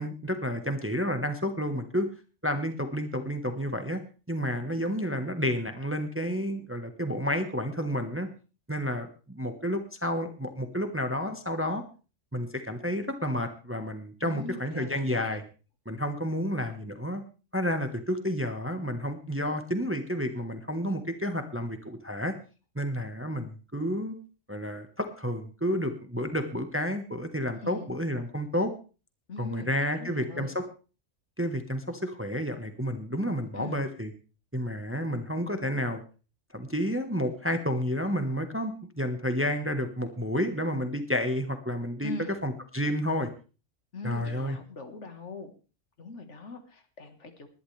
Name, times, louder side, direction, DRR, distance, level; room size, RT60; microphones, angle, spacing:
voice 1, 0.0-2.1 2.4-4.0 4.3-8.3 8.7-11.8 12.3-15.4 15.8-17.2 17.5-22.3 22.7-24.1 24.5-28.7 29.4-30.6 31.4-34.1 34.5-36.0 36.5-42.1 42.4-43.3 44.0-44.6, equal, 10° right, 7 dB, 1.1 m, -30 dB
voice 2, 14.2-15.4 27.6-27.9 29.3-30.6 33.5-33.8 42.0-42.3 43.9-45.5 46.0-47.5, left 2 dB, 60° left, 7 dB, 1.9 m, -41 dB
20.0 x 11.0 x 3.3 m, 0.34 s
omnidirectional pair, 1.4 m